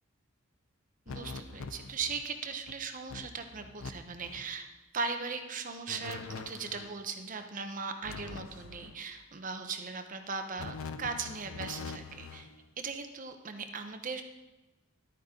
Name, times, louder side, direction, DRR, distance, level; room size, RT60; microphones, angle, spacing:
sound 1, 1.1-2.3 2.7-2.8 3.1-3.9 4.2-4.5 5.9-7.0 8.0-9.0 10.6-12.5, left 4 dB, 85° left, 0.6 m, -44 dB
voice 1, 1.1-12.5 12.8-14.2, right 4 dB, 40° right, 6 dB, 0.8 m, -38 dB
12.0 x 9.3 x 3.7 m, 1.1 s
head